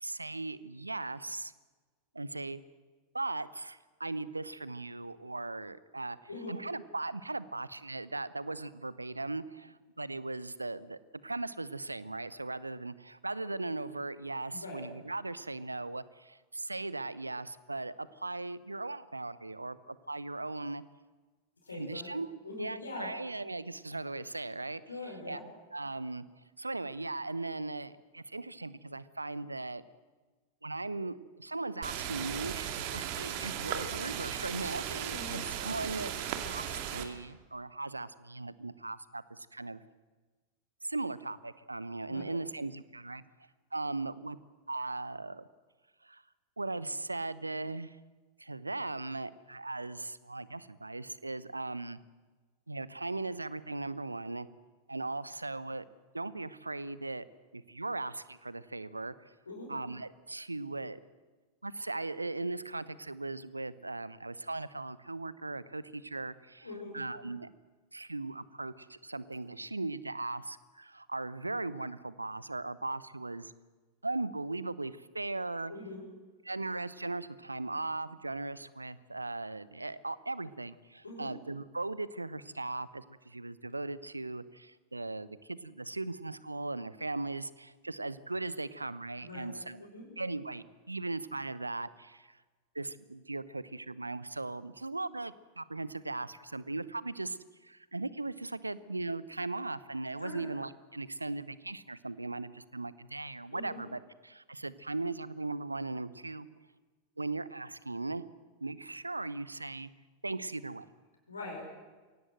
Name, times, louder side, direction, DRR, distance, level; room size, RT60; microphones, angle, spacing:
voice 1, 0.0-1.5 2.1-2.6 3.1-6.2 6.5-20.8 21.7-22.3 22.6-25.4 25.7-26.2 26.6-29.8 30.6-36.1 36.5-39.8 40.8-43.2 43.7-44.4 44.7-45.5 46.0-46.2 46.6-48.0 48.4-52.0 52.7-54.5 54.9-55.9 56.1-57.3 57.5-59.1 59.7-61.0 61.6-66.7 66.9-67.5 67.9-73.5 74.0-75.7 76.4-89.8 90.2-92.4 92.7-97.4 97.6-106.5 107.2-108.2 108.6-109.9 110.2-110.9, right 2 dB, 80° right, 18 dB, 0.8 m, -38 dB
voice 2, 14.5-14.9 21.6-22.1 22.4-23.1 24.9-25.4 35.1-35.4 42.1-42.3 59.5-59.7 66.6-67.0 75.7-76.0 81.0-81.3 89.2-90.1 100.2-100.4 103.5-103.8 111.3-111.6, left 2 dB, 75° left, 0 dB, 5.5 m, -43 dB
sound 1, 31.8-37.1, right 10 dB, 45° right, 2.2 m, -37 dB
24.0 x 17.5 x 7.8 m, 1.3 s
figure-of-eight pair, 90°, 0 cm